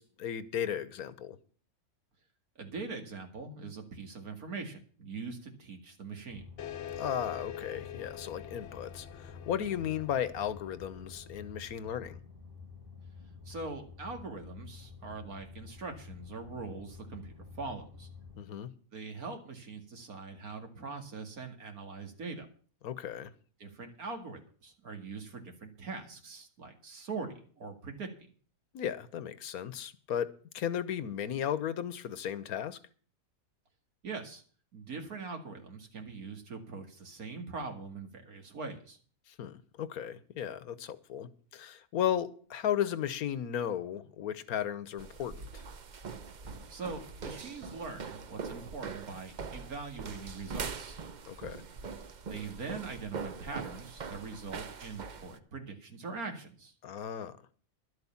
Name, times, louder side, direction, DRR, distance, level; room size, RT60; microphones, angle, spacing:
voice 1, 0.0-1.4 7.0-12.2 18.4-18.7 22.8-23.3 28.7-30.3 30.5-32.8 39.4-45.4 51.3-51.6 56.8-57.4, left 9 dB, 85° left, 1.4 m, -35 dB
voice 2, 2.6-6.4 13.5-18.1 18.9-22.5 23.6-28.1 34.0-34.4 34.7-39.0 46.7-51.0 52.2-56.7, right 4 dB, 85° right, 2.6 m, -42 dB
sound 1, 6.3-18.4, left 5 dB, 15° right, 1.4 m, -50 dB
sound 2, 6.6-11.7, left 10 dB, 60° left, 1.0 m, -45 dB
sound 3, 45.0-55.4, right 5 dB, 45° right, 0.6 m, -43 dB
12.0 x 8.1 x 7.2 m
omnidirectional pair, 1.5 m